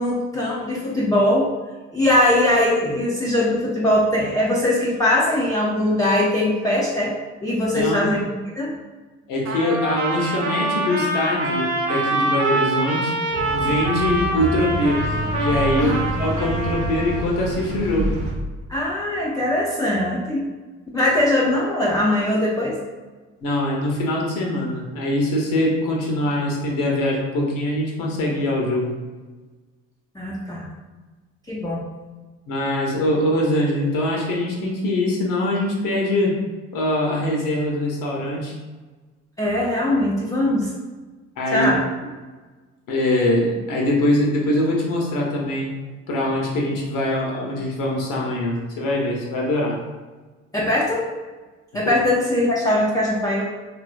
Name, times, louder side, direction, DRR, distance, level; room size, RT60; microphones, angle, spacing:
voice 1, 0.0-1.5 1.9-7.1 7.4-8.7 15.8-16.0 18.7-20.5 20.9-22.8 30.2-30.7 31.5-31.8 39.4-40.7 41.5-41.8 50.5-51.0 51.7-53.4, left 1 dB, 10° left, -5 dB, 0.4 m, -21 dB
voice 2, 7.7-8.2 9.3-13.1 13.5-15.1 15.4-18.1 23.4-28.9 32.5-36.4 36.7-38.5 41.4-41.7 42.0-42.1 42.9-45.7 46.1-49.8 51.8-51.9, left 1 dB, 65° left, -1 dB, 0.7 m, -23 dB
Trumpet, 9.4-17.3, right 2 dB, 80° right, 0.5 m, -25 dB
sound 1, 13.3-18.3, right 1 dB, 50° right, 0.8 m, -28 dB
3.0 x 2.4 x 2.4 m, 1.3 s
hypercardioid pair, 45°, 36 cm